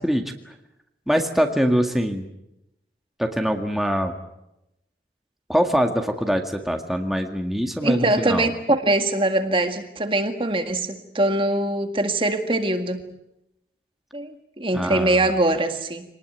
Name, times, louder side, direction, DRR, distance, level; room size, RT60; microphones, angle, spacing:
voice 1, 1.1-2.3 3.2-4.1 5.5-8.5 14.7-15.2, equal, ahead, 4 dB, 1.9 m, -23 dB
voice 2, 7.8-13.0 14.1-16.0, right 1 dB, 30° right, 7 dB, 1.9 m, -22 dB
26.0 x 19.5 x 9.3 m, 0.88 s
head